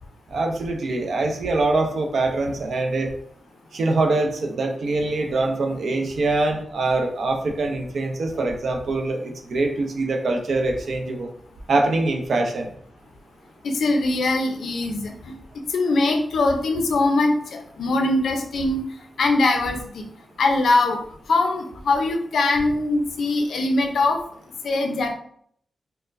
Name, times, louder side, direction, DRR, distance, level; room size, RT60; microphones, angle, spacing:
voice 1, 0.3-3.1 3.7-11.3 11.7-12.7, right 2 dB, 65° right, 4 dB, 0.5 m, -23 dB
voice 2, 13.6-15.3 15.7-18.8 19.2-20.1 20.4-21.0 21.3-24.2 24.6-25.1, left 2 dB, 85° left, 4 dB, 0.5 m, -22 dB
4.3 x 2.1 x 2.5 m, 0.63 s
wide cardioid pair, 135°, 0 cm